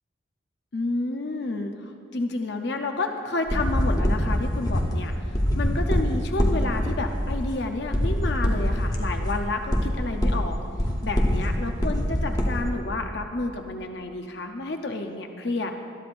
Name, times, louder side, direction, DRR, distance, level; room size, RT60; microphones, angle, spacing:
voice 1, 0.7-10.6 11.0-15.7, left 2 dB, 60° left, 5 dB, 0.7 m, -30 dB
sound 1, 3.5-12.7, equal, 20° left, 1.0 m, -24 dB
20.0 x 12.5 x 2.6 m, 2.3 s
head